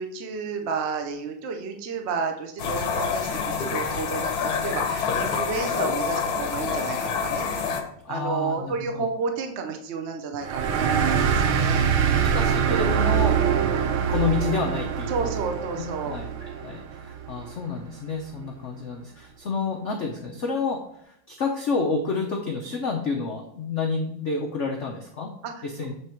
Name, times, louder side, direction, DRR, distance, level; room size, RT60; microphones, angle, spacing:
voice 1, 0.0-4.3 4.6-7.5 8.1-12.4 15.1-16.2 25.4-25.6, right 4 dB, 60° right, 5 dB, 0.7 m, -31 dB
sound 1, 2.6-7.8, left 6 dB, 60° left, 1.1 m, -27 dB
voice 2, 8.0-9.0 11.4-11.7 12.3-13.4 13.9-15.3 15.8-25.3 25.6-25.9, left 4 dB, 80° left, 2 dB, 0.6 m, -29 dB
sound 2, 10.4-17.5, right 7 dB, 85° right, 1.5 m, -24 dB
8.1 x 3.5 x 4.4 m, 0.73 s
omnidirectional pair, 2.3 m